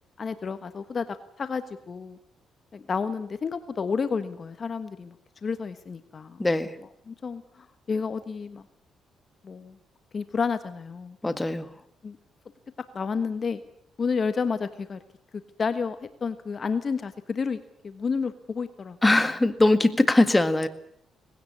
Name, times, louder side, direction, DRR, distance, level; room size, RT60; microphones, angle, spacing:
voice 1, 0.2-2.2 2.7-5.2 5.4-6.4 7.1-8.6 9.4-9.8 10.1-11.2 12.0-12.2 12.9-13.6 14.0-15.0 15.6-19.0, left 5 dB, 40° left, 11 dB, 1.3 m, -30 dB
voice 2, 6.4-6.8 11.2-11.7 19.0-20.7, left 2 dB, 15° left, 10 dB, 1.9 m, -21 dB
19.5 x 17.0 x 9.7 m, 0.71 s
cardioid pair, 90°, 0 cm